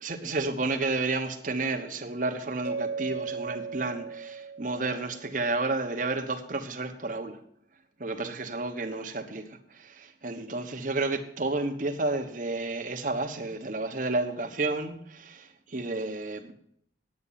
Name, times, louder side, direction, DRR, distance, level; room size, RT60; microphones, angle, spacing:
voice 1, 0.0-7.4 8.0-16.5, right 3 dB, 45° right, 1.1 m, -31 dB
Mallet percussion, 2.6-5.6, right 5 dB, 85° right, 1.0 m, -37 dB
9.9 x 8.8 x 5.7 m
head